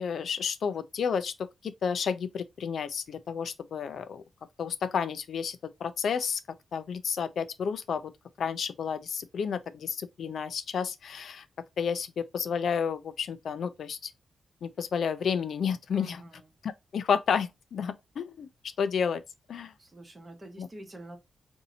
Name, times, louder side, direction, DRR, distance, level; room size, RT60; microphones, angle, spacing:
voice 1, 0.0-4.2 4.6-6.4 6.7-8.1 8.4-11.5 11.8-14.1 14.6-16.2 16.6-18.5 18.8-19.2 19.5-19.7 20.6-20.7, left 6 dB, 65° left, 0.4 m, -31 dB
voice 2, 15.9-16.6 19.8-21.2, right 1 dB, 20° right, 0.8 m, -47 dB
2.7 x 2.6 x 4.0 m
wide cardioid pair, 170°, 0 cm